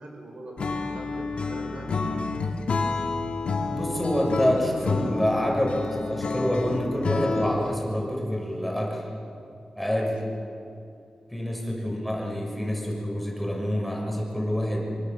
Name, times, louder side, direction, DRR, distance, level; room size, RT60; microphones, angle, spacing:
voice 1, 0.0-2.0 10.1-10.4, right 1 dB, 60° right, 1 dB, 5.9 m, -42 dB
Acoustic guitar / Strum, 0.6-7.8, left 4 dB, 65° left, 2.4 m, -29 dB
voice 2, 3.7-9.0 9.8-10.2 11.3-14.9, equal, ahead, -2 dB, 6.8 m, -27 dB
26.5 x 24.5 x 7.4 m, 2.6 s
wide cardioid pair, 110°, 2 cm